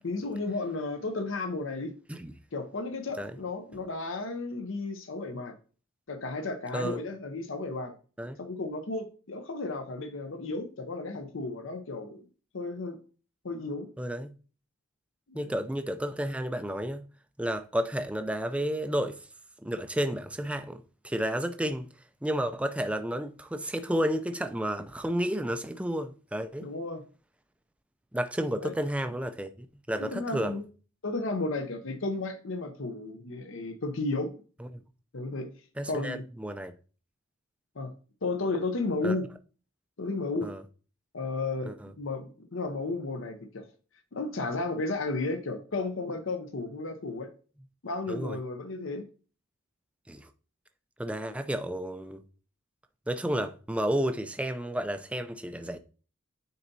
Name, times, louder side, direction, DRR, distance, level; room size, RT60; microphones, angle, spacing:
voice 1, 0.0-1.9 2.5-5.6 6.1-7.9 8.4-12.2 12.5-13.0 13.4-13.9 15.3-15.5 26.6-27.0 28.6-28.7 30.0-30.7 31.0-34.3 35.1-35.5 35.9-36.2 37.8-37.9 38.2-39.3 40.0-40.5 41.1-43.7 44.1-47.3 47.8-49.0, left 3 dB, 65° left, 0.7 m, -33 dB
voice 2, 14.0-14.3 15.3-17.1 17.4-19.2 19.6-21.9 22.2-26.7 28.1-30.6 34.6-34.8 35.8-36.7 39.0-39.1 40.4-40.6 41.7-41.9 48.1-48.4 50.1-50.3 51.0-52.2 53.1-55.8, equal, 5° right, 0.4 m, -31 dB
9.2 x 4.0 x 2.7 m
head